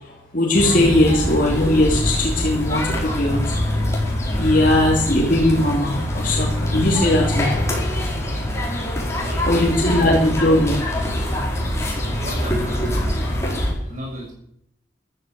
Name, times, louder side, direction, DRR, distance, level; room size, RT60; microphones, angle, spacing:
voice 1, 0.3-3.5 4.4-7.6 9.4-10.8, left 1 dB, 50° left, -1 dB, 2.8 m, -19 dB
sound 1, 0.5-13.7, left 1 dB, 15° left, 5.1 m, -24 dB
voice 2, 9.2-10.1 12.2-13.3 13.9-14.3, right 1 dB, 45° right, -2 dB, 6.8 m, -36 dB
14.5 x 12.5 x 7.7 m, 0.70 s
head